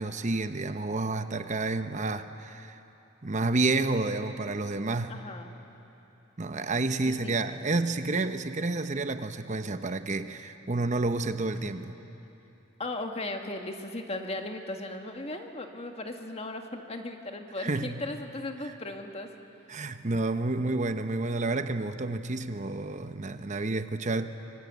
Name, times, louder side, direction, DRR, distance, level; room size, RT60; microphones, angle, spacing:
voice 1, 0.0-2.8 3.2-5.2 6.4-12.0 17.6-18.0 18.6-18.7 19.7-24.3, right 2 dB, 35° right, 9 dB, 0.9 m, -30 dB
voice 2, 5.1-5.5 7.0-7.4 11.6-11.7 12.8-19.3, left 2 dB, 30° left, 4 dB, 1.8 m, -37 dB
25.5 x 23.5 x 8.3 m, 3.0 s
head